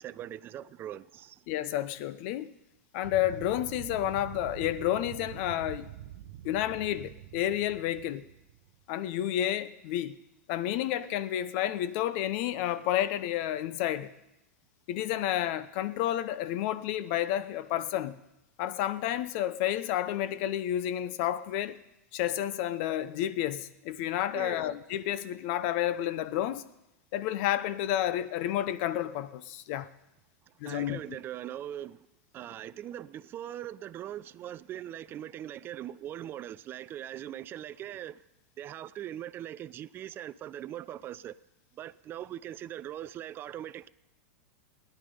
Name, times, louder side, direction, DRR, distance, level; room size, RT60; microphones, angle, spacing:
voice 1, 0.0-1.4 24.3-24.6 30.6-32.0 32.3-38.2 38.6-41.4 41.8-43.9, right 11 dB, 30° right, 0.4 m, -41 dB
voice 2, 1.5-2.5 2.9-5.9 6.4-8.2 8.9-10.2 10.5-14.1 14.9-18.2 18.6-21.8 22.1-26.7 27.1-29.9 30.6-31.2, left 12 dB, 55° left, 0.8 m, -30 dB
sound 1, 3.0-8.8, right 14 dB, 65° right, 0.7 m, -45 dB
18.0 x 10.5 x 5.4 m
hypercardioid pair, 120°, 8 cm